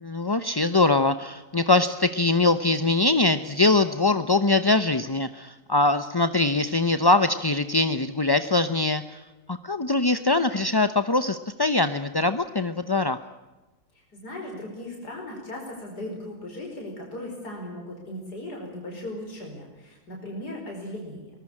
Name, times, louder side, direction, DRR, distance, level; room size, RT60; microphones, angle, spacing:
voice 1, 0.0-9.2 9.5-13.2, left 2 dB, 25° left, 10 dB, 0.5 m, -22 dB
voice 2, 13.9-21.3, left 1 dB, 85° left, 0 dB, 5.6 m, -37 dB
23.0 x 20.0 x 8.6 m, 1.1 s
omnidirectional pair, 1.7 m